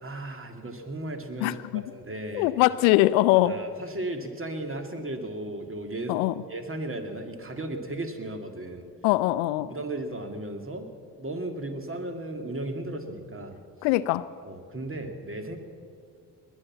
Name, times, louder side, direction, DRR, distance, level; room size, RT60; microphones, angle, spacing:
voice 1, 0.0-2.6 3.3-6.2 6.5-8.9 9.7-10.9 11.2-13.6 14.4-15.6, right 2 dB, 30° right, 6 dB, 2.3 m, -35 dB
voice 2, 1.4-1.8 2.3-3.5 6.1-6.3 9.0-9.7 13.8-14.3, left 16 dB, 85° left, 17 dB, 0.5 m, -22 dB
21.0 x 8.2 x 7.4 m, 2.2 s
hypercardioid pair, 45°, 42 cm